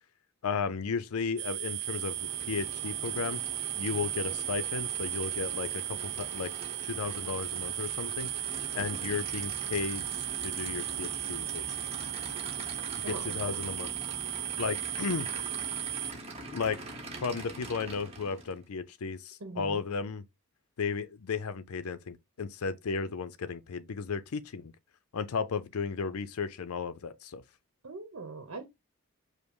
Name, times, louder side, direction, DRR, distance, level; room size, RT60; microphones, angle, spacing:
voice 1, 0.4-3.4 3.8-6.5 6.8-8.3 8.7-11.7 13.0-13.9 14.6-15.3 16.5-16.8 17.2-20.2 20.8-24.7 25.1-27.4, left 5 dB, 80° left, 0.5 m, -34 dB
sound 1, 1.4-16.1, right 13 dB, 50° right, 0.3 m, -36 dB
Aircraft / Idling, 1.7-18.6, right 2 dB, 30° right, 1.0 m, -44 dB
voice 2, 13.0-13.4 19.4-19.8 27.8-28.6, right 3 dB, 75° right, 0.8 m, -40 dB
5.2 x 2.1 x 4.7 m
head